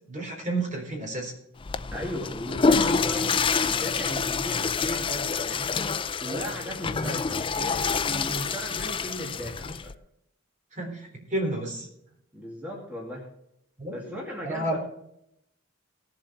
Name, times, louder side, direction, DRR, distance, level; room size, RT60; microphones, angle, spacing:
voice 1, 0.0-1.3 6.2-6.5 7.0-7.2 8.2-8.4 10.7-11.9 13.8-14.2 14.4-14.8, right 2 dB, 40° right, 0 dB, 4.1 m, -32 dB
Water / Toilet flush, 1.6-9.9, left 5 dB, 25° left, 0.4 m, -27 dB
voice 2, 1.9-5.7 6.2-9.9 12.3-13.3 13.9-14.8, equal, 10° right, -3 dB, 2.4 m, -37 dB
18.0 x 7.7 x 4.4 m, 0.77 s
head